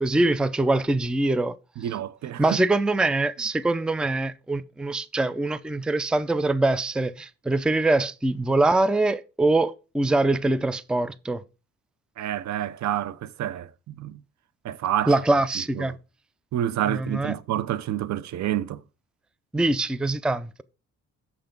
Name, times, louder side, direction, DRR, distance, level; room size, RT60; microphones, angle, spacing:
voice 1, 0.0-1.6 2.4-11.4 15.1-15.9 16.9-17.3 19.5-20.6, right 2 dB, 5° right, 0.5 m, -23 dB
voice 2, 1.8-2.6 12.2-14.2 14.6-15.1 15.8-15.9 16.5-18.8, right 11 dB, 65° right, 0.6 m, -28 dB
7.7 x 5.8 x 5.2 m
cardioid pair, 90°, 30 cm